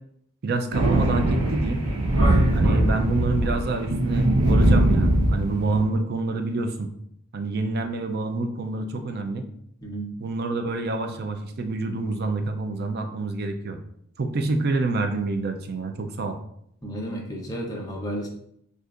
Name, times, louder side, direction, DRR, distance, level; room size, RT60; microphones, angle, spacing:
voice 1, 0.4-1.9 2.5-6.9 7.3-9.5 10.2-13.8 14.2-16.4, right 3 dB, 45° right, 6 dB, 0.4 m, -27 dB
Thunder, 0.7-5.8, right 1 dB, 90° right, 0.9 m, -21 dB
voice 2, 9.8-10.1 14.4-14.5 16.8-18.3, right 1 dB, 15° left, -1 dB, 0.7 m, -32 dB
6.2 x 2.5 x 2.4 m, 0.71 s
head